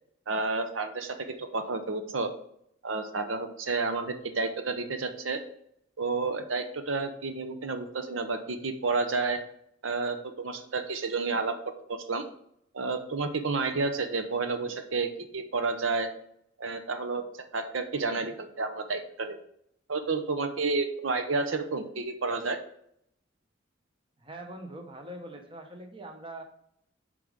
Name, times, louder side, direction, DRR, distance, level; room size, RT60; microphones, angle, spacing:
voice 1, 0.3-2.3 2.8-5.4 6.0-9.4 9.8-11.6 11.9-12.3 12.7-16.1 16.6-19.4 19.9-22.6, right 3 dB, 85° right, 8 dB, 0.8 m, -30 dB
voice 2, 24.2-26.4, right 1 dB, 25° right, 4 dB, 1.0 m, -43 dB
8.6 x 5.1 x 3.6 m, 0.71 s
head